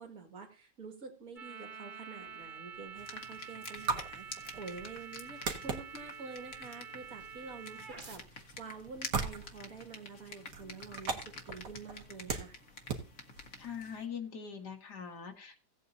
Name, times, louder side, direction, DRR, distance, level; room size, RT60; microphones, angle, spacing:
voice 1, 0.0-12.6, right 4 dB, 55° right, 4 dB, 2.5 m, -48 dB
sound 1, 1.4-8.2, right 6 dB, 30° right, 1.2 m, -48 dB
sound 2, 2.2-14.0, right 4 dB, 80° right, 2.0 m, -42 dB
sound 3, 3.0-14.1, left 3 dB, 55° left, 1.8 m, -49 dB
voice 2, 13.6-15.6, left 7 dB, 70° left, 4 dB, 2.3 m, -42 dB
17.0 x 8.4 x 2.7 m, 0.36 s
omnidirectional pair, 1.8 m